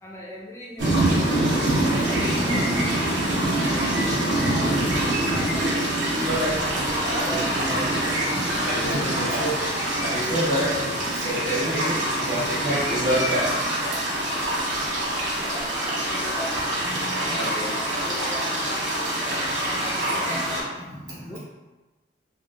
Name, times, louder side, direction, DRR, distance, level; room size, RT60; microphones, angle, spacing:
voice 1, 0.0-4.8 5.3-8.1 8.9-9.3 15.2-15.8 16.0-16.7 17.3-18.9 19.7-20.8 21.2-21.4, left 1 dB, 15° left, -6 dB, 0.3 m, -39 dB
sound 1, 0.8-20.6, right 1 dB, 65° right, 0.8 m, -25 dB
voice 2, 6.8-7.8 8.6-9.6 10.0-10.7 11.1-13.5 16.9-17.7 19.1-19.7 20.3-20.5 20.8-21.4, equal, 50° right, -7 dB, 1.2 m, -29 dB
3.4 x 2.4 x 2.3 m, 1.2 s
head